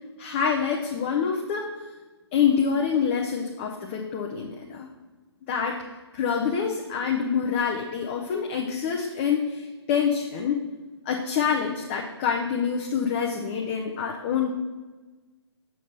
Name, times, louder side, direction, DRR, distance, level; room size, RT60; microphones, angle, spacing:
voice 1, 0.2-1.7 2.3-4.9 5.5-5.8 6.1-10.6 11.1-14.5, left 7 dB, 25° left, 1 dB, 0.6 m, -26 dB
7.1 x 6.8 x 4.3 m, 1.3 s
figure-of-eight pair, 135°, 14 cm